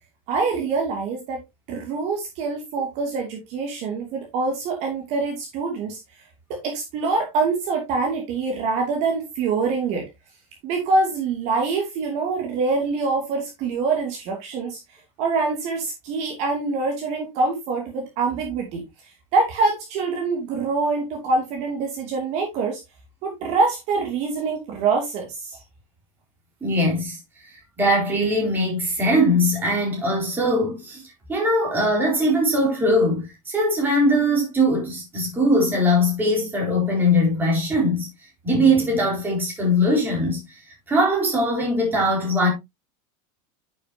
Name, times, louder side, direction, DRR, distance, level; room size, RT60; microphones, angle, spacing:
voice 1, 0.3-1.4 1.7-6.0 6.5-10.1 10.6-18.8 19.3-22.8 23.2-25.6, right 4 dB, 40° right, 2.6 m, -25 dB
voice 2, 26.6-27.2 27.8-31.0 31.3-38.1 38.4-40.4 40.9-42.5, equal, 10° right, 4.2 m, -21 dB
10.5 x 7.1 x 2.8 m
supercardioid pair, 180°, 17 cm